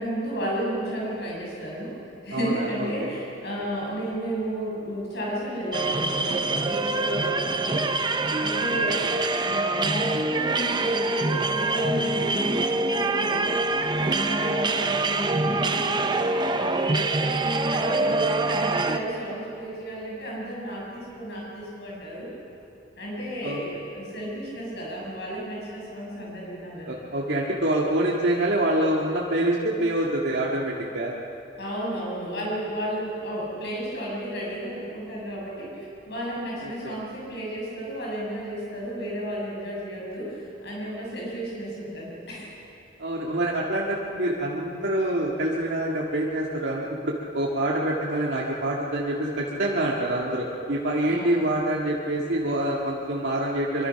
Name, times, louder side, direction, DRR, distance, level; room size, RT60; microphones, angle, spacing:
voice 1, 0.0-1.9 2.2-7.8 8.3-9.0 9.4-13.6 13.9-17.3 17.7-22.3 23.0-27.0 31.6-42.5 51.1-51.4, equal, 65° left, -4 dB, 6.8 m, -33 dB
voice 2, 2.3-3.1 8.7-9.1 14.8-15.0 18.0-18.2 23.4-23.6 26.9-31.1 36.6-36.9 43.0-53.9, right 1 dB, 65° right, -4 dB, 2.1 m, -26 dB
sound 1, 5.7-19.0, right 2 dB, 25° right, 0.8 m, -25 dB
24.0 x 24.0 x 5.9 m, 3.0 s
head